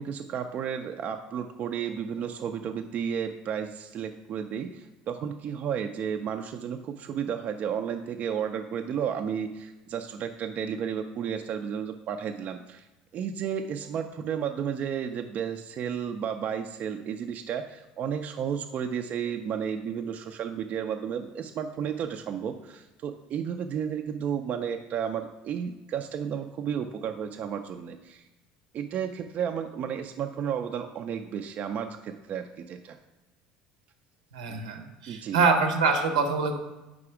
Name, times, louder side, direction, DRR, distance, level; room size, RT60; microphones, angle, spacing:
voice 1, 0.0-12.8 13.1-28.3 28.7-33.0 35.1-35.4, right 8 dB, 50° right, 6 dB, 0.4 m, -32 dB
voice 2, 34.3-36.6, right 4 dB, 90° right, 4 dB, 0.9 m, -25 dB
4.8 x 4.1 x 4.9 m, 1.1 s
hypercardioid pair, 75°, 3 cm